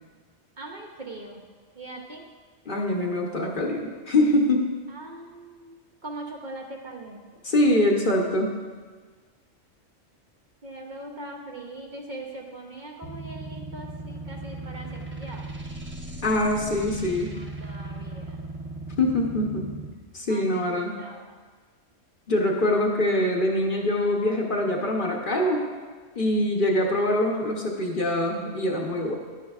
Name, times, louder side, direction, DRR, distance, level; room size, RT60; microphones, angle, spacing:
voice 1, 0.6-1.5 1.7-2.2 4.9-5.7 6.0-7.2 10.6-15.5 17.3-18.4 20.2-21.4, right 2 dB, 45° right, 0 dB, 0.9 m, -41 dB
voice 2, 2.7-4.7 7.4-8.6 16.2-17.4 19.0-19.7 20.1-21.1 22.3-25.7 26.2-29.2, left 1 dB, 45° left, 0 dB, 1.0 m, -24 dB
sound 1, 13.0-19.9, right 2 dB, 10° right, 0.6 m, -37 dB
11.0 x 9.3 x 2.4 m, 1.5 s
omnidirectional pair, 1.3 m